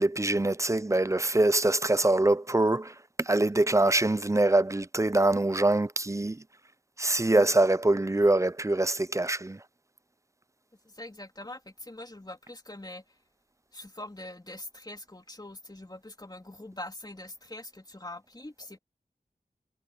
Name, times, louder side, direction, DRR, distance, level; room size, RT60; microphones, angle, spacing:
voice 1, 0.0-6.4 7.0-9.6, right 2 dB, 20° right, 0.5 m, -24 dB
voice 2, 10.8-13.0 13.7-18.8, left 1 dB, 25° left, 3.4 m, -43 dB
wide cardioid pair, 45°, 15 cm